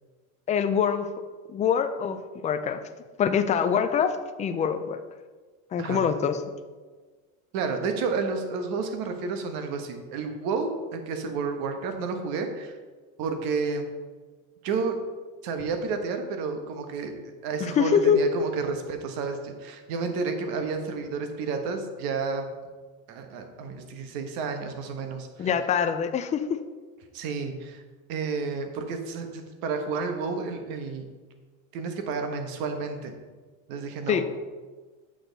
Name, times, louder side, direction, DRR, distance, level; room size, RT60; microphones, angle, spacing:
voice 1, 0.5-1.1 1.5-2.8 3.2-5.0 5.7-6.4 17.6-18.2 25.4-26.6 34.1-34.2, left 7 dB, 20° left, 9 dB, 0.3 m, -24 dB
voice 2, 7.5-12.8 13.2-13.9 14.6-15.0 15.4-22.5 23.1-25.5 27.1-27.8 28.1-31.1 31.7-33.1 33.7-34.2, right 4 dB, 60° right, 6 dB, 1.3 m, -31 dB
7.7 x 6.4 x 4.0 m, 1.4 s
supercardioid pair, 125°, 40 cm